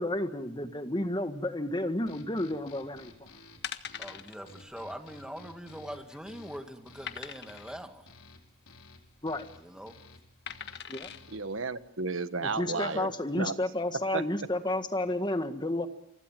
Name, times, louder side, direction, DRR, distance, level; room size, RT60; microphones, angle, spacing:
voice 1, 0.0-3.1 9.2-9.5 10.9-11.1 12.4-15.9, left 1 dB, 20° left, 8 dB, 1.7 m, -31 dB
sound 1, 2.1-11.6, left 3 dB, 85° left, 4.4 m, -54 dB
sound 2, 3.6-4.4 4.7-4.9 5.1-5.2 5.8-6.3 7.1-7.7 9.1-9.4 10.5-11.2 11.8-11.9, left 8 dB, 50° left, 1.5 m, -41 dB
voice 2, 4.0-8.1 9.5-10.0 12.6-13.0, equal, 5° right, 6 dB, 2.2 m, -43 dB
voice 3, 11.3-13.6 14.1-14.2, right 4 dB, 65° right, 12 dB, 1.4 m, -33 dB
29.5 x 24.5 x 7.6 m, 0.78 s
head